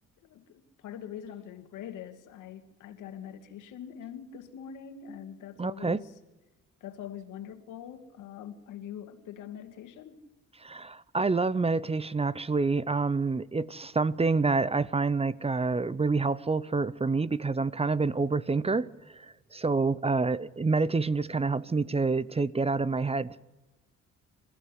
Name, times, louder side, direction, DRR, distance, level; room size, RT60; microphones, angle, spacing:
voice 1, 0.2-6.1 6.8-10.2, left 9 dB, 85° left, 2.3 m, -43 dB
voice 2, 5.6-6.0 10.6-18.9 19.2-23.3, right 4 dB, 20° right, 0.7 m, -27 dB
26.0 x 15.0 x 9.9 m
cardioid pair, 90°, 30 cm